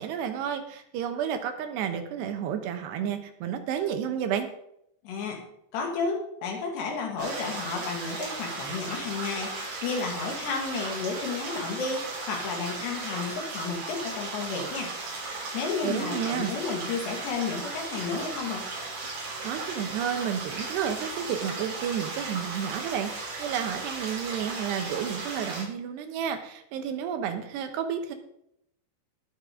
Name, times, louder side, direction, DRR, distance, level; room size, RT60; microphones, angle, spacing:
voice 1, 0.0-4.5 15.8-16.5 19.4-28.1, right 8 dB, 85° right, 7 dB, 3.2 m, -31 dB
voice 2, 5.0-5.4 5.7-14.9 15.5-18.7, left 4 dB, 80° left, 1 dB, 4.4 m, -32 dB
sound 1, 7.2-25.6, right 3 dB, 60° right, 5.4 m, -36 dB
19.0 x 6.7 x 3.8 m, 0.75 s
omnidirectional pair, 4.8 m